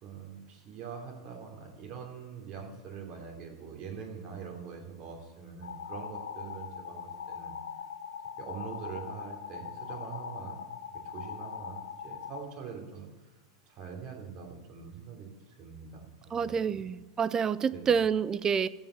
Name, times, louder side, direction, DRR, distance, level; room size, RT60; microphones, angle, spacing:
voice 1, 0.0-7.6 8.4-10.6 10.9-13.1 13.7-16.8 17.7-18.0, right 6 dB, 40° right, 2 dB, 2.9 m, -44 dB
sound 1, 5.6-12.4, left 7 dB, 80° left, 1.2 m, -41 dB
voice 2, 16.3-18.7, right 6 dB, 25° right, 19 dB, 0.5 m, -28 dB
14.5 x 5.2 x 8.3 m, 1.3 s
hypercardioid pair, 95°, 3 cm